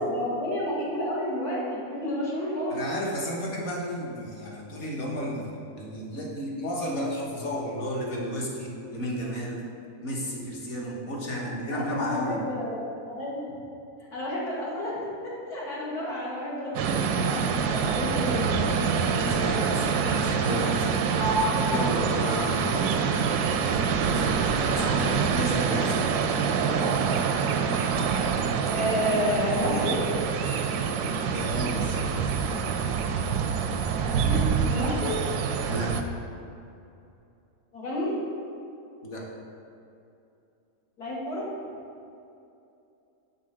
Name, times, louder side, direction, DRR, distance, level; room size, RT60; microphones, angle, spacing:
voice 1, 0.0-2.8 11.3-13.4 14.1-15.0 15.2-18.6 28.7-30.0 34.0-35.2 37.7-38.1 41.0-41.5, left 1 dB, 80° left, -7 dB, 2.2 m, -30 dB
voice 2, 2.7-5.5 5.8-9.7 10.0-12.4 18.8-21.4 21.7-23.0 23.8-26.0 31.3-32.0 35.7-35.9 39.0-39.3, equal, 50° left, -3 dB, 1.5 m, -33 dB
sound 1, 16.7-36.0, right 6 dB, 80° right, 1.1 m, -26 dB
Sliding door, 21.1-24.7 25.0-26.3, right 1 dB, 35° right, 0.5 m, -34 dB
7.6 x 4.0 x 6.0 m, 2.7 s
omnidirectional pair, 1.6 m